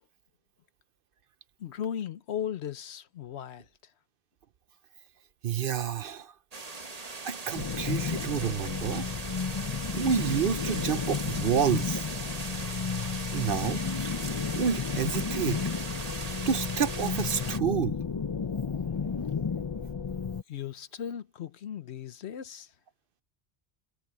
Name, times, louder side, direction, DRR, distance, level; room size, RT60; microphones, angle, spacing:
voice 1, 1.6-3.6 20.5-22.7, left 9 dB, 75° left, 1.1 m, -36 dB
voice 2, 5.4-6.3 7.2-9.0 9.9-12.0 13.3-13.8 14.6-15.6 16.5-18.0, right 8 dB, 60° right, 0.8 m, -29 dB
sound 1, 6.5-17.6, right 3 dB, 35° right, 1.3 m, -39 dB
sound 2, 7.6-20.4, left 6 dB, 40° left, 0.4 m, -32 dB
omnidirectional pair, 1.1 m